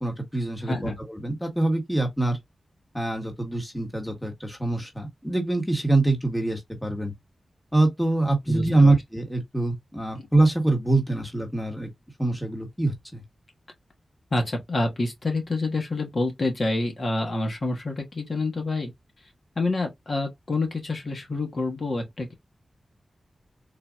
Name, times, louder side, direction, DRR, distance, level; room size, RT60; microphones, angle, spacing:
voice 1, 0.0-2.4 2.9-7.1 7.7-11.9 12.2-13.2, right 2 dB, 5° left, 1.5 m, -24 dB
voice 2, 8.5-9.0 10.2-10.3 14.3-18.9 19.5-22.3, left 2 dB, 60° left, 1.4 m, -27 dB
3.9 x 2.7 x 2.4 m
cardioid pair, 55°, 0 cm